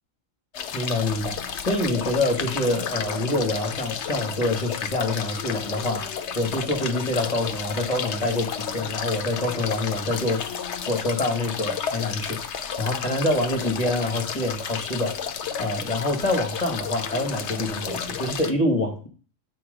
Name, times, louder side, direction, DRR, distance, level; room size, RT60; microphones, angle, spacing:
sound 1, 0.5-18.5, left 7 dB, 60° left, 1.0 m, -32 dB
voice 1, 0.7-6.1 6.3-10.4 10.9-12.4 12.8-15.2 15.6-19.1, left 1 dB, 30° left, 2 dB, 1.9 m, -26 dB
7.7 x 4.6 x 5.1 m, 0.37 s
omnidirectional pair, 1.4 m